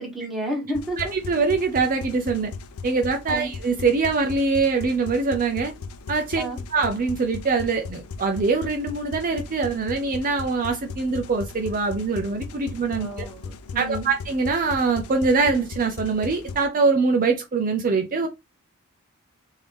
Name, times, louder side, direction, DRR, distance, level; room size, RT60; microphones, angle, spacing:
voice 1, 0.0-1.1 3.3-3.5 6.4-6.6 12.9-14.1, right 1 dB, ahead, 1.4 m, -31 dB
sound 1, 0.7-16.6, left 4 dB, 85° left, 0.5 m, -38 dB
voice 2, 1.0-2.5 2.8-5.7 6.1-6.4 6.7-13.2 13.8-18.3, right 4 dB, 40° right, 0.5 m, -23 dB
4.6 x 2.7 x 3.4 m
head